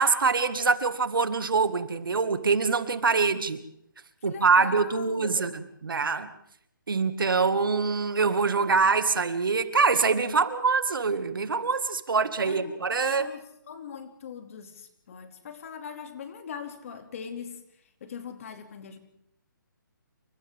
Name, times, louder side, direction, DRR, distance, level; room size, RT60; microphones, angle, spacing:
voice 1, 0.0-3.6 4.2-6.3 6.9-13.3, right 4 dB, 80° right, 10 dB, 2.1 m, -24 dB
voice 2, 4.2-5.6 12.4-17.6 18.0-19.0, left 7 dB, 40° left, 7 dB, 2.7 m, -41 dB
28.5 x 25.0 x 3.7 m, 0.72 s
hypercardioid pair, 165°, 11 cm